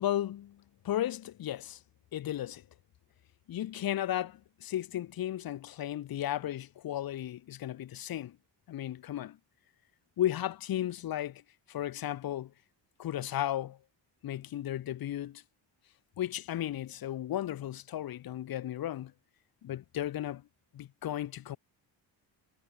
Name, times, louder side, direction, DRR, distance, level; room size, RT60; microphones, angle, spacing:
voice 1, 0.0-1.8 2.1-2.6 3.5-8.4 8.7-9.4 10.2-11.4 11.7-12.5 13.0-13.8 14.2-15.4 16.2-19.1 19.6-20.4 20.7-21.6, left 12 dB, 50° left, 0.8 m, -34 dB
cardioid pair, 100°, 45 cm